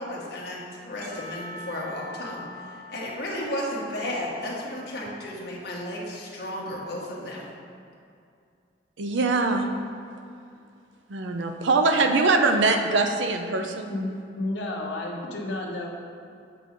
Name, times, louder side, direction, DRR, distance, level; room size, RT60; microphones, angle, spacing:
voice 1, 0.0-7.5, left 1 dB, 60° left, -4 dB, 1.4 m, -33 dB
Percussion / Church bell, 1.0-5.4, left 1 dB, 40° left, 1.8 m, -44 dB
voice 2, 9.0-9.7 11.1-13.9, right 3 dB, 85° right, 5 dB, 0.6 m, -22 dB
voice 3, 13.9-15.9, left 2 dB, 80° left, -1 dB, 1.1 m, -31 dB
7.4 x 5.9 x 3.8 m, 2.4 s
head